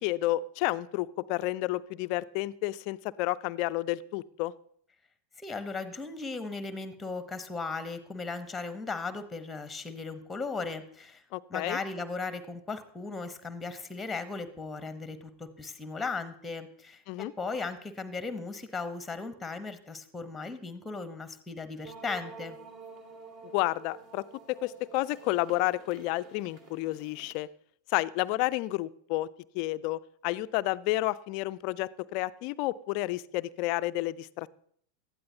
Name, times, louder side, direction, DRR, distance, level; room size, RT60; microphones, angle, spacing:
voice 1, 0.0-4.5 11.3-11.8 17.1-17.3 23.5-27.5 27.9-29.3 29.5-34.5, left 17 dB, 45° left, 17 dB, 0.4 m, -31 dB
voice 2, 5.4-11.2 11.5-22.6, left 4 dB, 10° left, 12 dB, 1.0 m, -37 dB
sound 1, 21.8-27.3, right 4 dB, 40° right, 2.1 m, -49 dB
18.0 x 12.5 x 2.8 m, 0.63 s
figure-of-eight pair, 90°, 0 cm